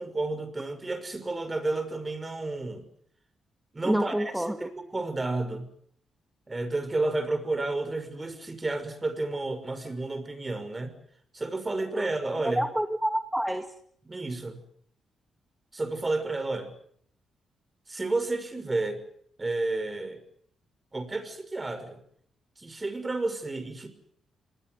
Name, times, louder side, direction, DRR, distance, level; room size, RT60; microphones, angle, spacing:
voice 1, 0.0-2.9 3.7-5.7 6.5-10.9 11.3-12.6 14.0-14.6 15.7-16.7 17.9-19.0 19.4-20.2 20.9-22.0 22.6-23.9, right 2 dB, 25° right, 11 dB, 6.0 m, -31 dB
voice 2, 3.9-4.7 11.9-12.1 12.4-13.7, right 1 dB, 5° right, 6 dB, 2.1 m, -28 dB
27.0 x 19.5 x 8.1 m, 0.66 s
supercardioid pair, 60°, 0 cm